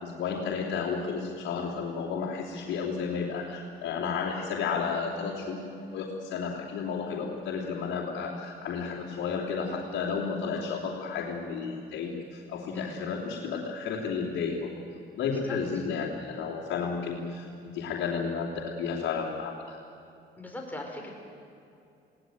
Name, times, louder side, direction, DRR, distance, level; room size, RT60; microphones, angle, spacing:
voice 1, 0.0-14.7 15.2-17.5 17.7-19.8, left 5 dB, 80° left, -7 dB, 3.0 m, -32 dB
voice 2, 20.4-21.1, left 1 dB, 10° left, 0 dB, 5.4 m, -39 dB
20.5 x 18.0 x 9.4 m, 2.7 s
cardioid pair, 90°, 20 cm